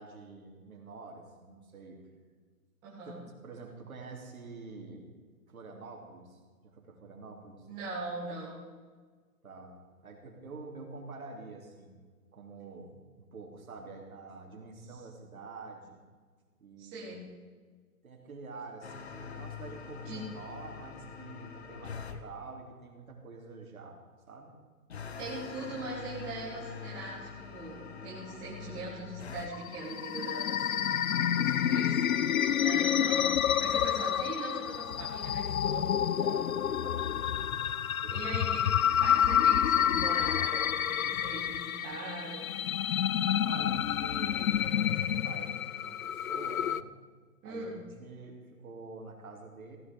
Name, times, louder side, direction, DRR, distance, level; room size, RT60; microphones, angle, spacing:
voice 1, 0.0-2.0 3.0-3.2 3.4-5.1 5.5-7.7 9.4-12.0 12.3-16.0 16.6-17.2 18.0-24.0 24.3-24.6 31.1-31.7 32.3-32.8 36.2-37.3 38.0-38.4 43.4-46.8 47.4-49.8, right 4 dB, 65° right, 1 dB, 3.3 m, -47 dB
voice 2, 2.8-3.2 7.7-8.6 16.8-17.2 20.0-20.3 25.2-30.9 31.4-32.0 32.6-33.3 33.6-35.9 38.1-38.7 39.0-42.4 47.4-47.8, right 2 dB, 10° right, -7 dB, 1.5 m, -41 dB
sound 1, 18.8-22.2 24.9-29.5, left 7 dB, 45° left, 1.1 m, -44 dB
sound 2, 29.5-46.8, left 9 dB, 65° left, 0.6 m, -29 dB
16.0 x 11.5 x 5.3 m, 1.5 s
hypercardioid pair, 175°, 46 cm